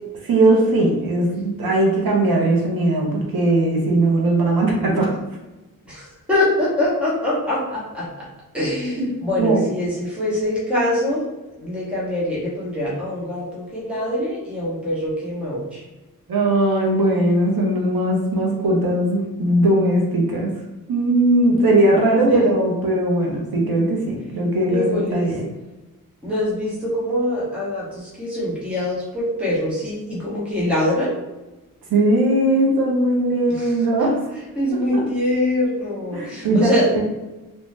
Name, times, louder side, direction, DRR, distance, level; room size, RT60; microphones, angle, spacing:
voice 1, 0.2-5.2 9.0-9.1 9.4-9.7 16.3-20.5 20.9-25.4 31.9-34.2 34.9-35.0 36.1-37.0, right 1 dB, 75° right, -1 dB, 0.7 m, -19 dB
voice 2, 5.9-8.3 8.5-11.3 11.6-15.8 22.3-22.5 24.7-25.3 26.2-31.1 33.5-33.7 34.6-37.0, left 1 dB, 5° right, -8 dB, 0.9 m, -24 dB
2.6 x 2.1 x 3.2 m, 1.0 s
wide cardioid pair, 170°, 35 cm